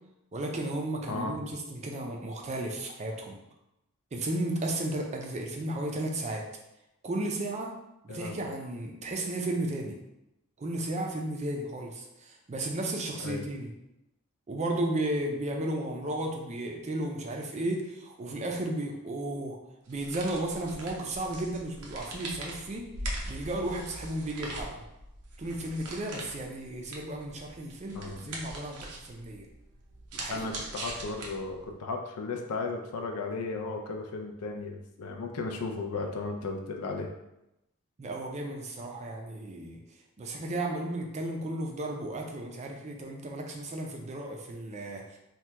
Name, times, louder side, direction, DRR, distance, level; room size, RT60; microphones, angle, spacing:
voice 1, 0.3-3.4 4.1-6.5 7.0-7.7 8.0-10.0 10.6-13.7 14.5-19.6 19.9-22.9 23.3-24.8 25.4-29.5 30.2-30.5 38.0-39.8 40.2-45.2, right 1 dB, 30° right, 1 dB, 0.4 m, -34 dB
voice 2, 1.1-1.4 8.1-8.4 13.2-13.4 27.9-28.4 30.3-37.1, left 3 dB, 80° left, 3 dB, 0.4 m, -35 dB
sound 1, 19.9-31.7, right 1 dB, 85° right, 0.6 m, -42 dB
2.9 x 2.2 x 3.3 m, 0.90 s
head